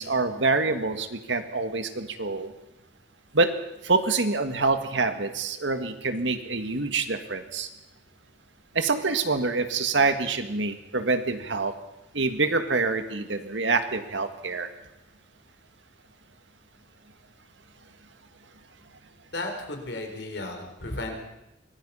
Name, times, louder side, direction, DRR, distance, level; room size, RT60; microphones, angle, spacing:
voice 1, 0.0-2.5 3.3-3.5 3.8-7.7 8.7-11.7 12.1-14.7, right 3 dB, 90° right, 8 dB, 1.8 m, -26 dB
voice 2, 19.3-21.1, left 2 dB, 65° left, 4 dB, 4.0 m, -34 dB
24.0 x 19.0 x 5.6 m, 0.90 s
head